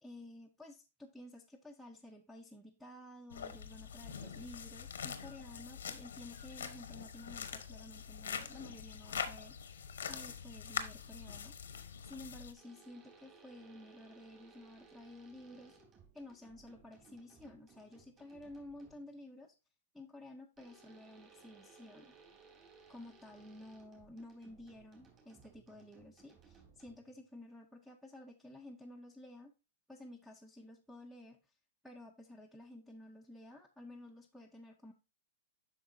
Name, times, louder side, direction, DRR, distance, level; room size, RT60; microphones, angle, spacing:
voice 1, 0.0-9.8 10.1-11.6 12.0-15.8 16.1-19.5 19.9-22.1 22.9-29.5 29.9-31.5 31.8-34.9, left 1 dB, ahead, 4 dB, 0.6 m, -53 dB
sound 1, 3.3-12.5, left 7 dB, 90° left, 1.0 m, -44 dB
sound 2, 12.6-19.2 20.6-27.2, right 4 dB, 30° right, 2.5 m, -62 dB
8.3 x 5.8 x 2.6 m, 0.28 s
hypercardioid pair, 135°, 0 cm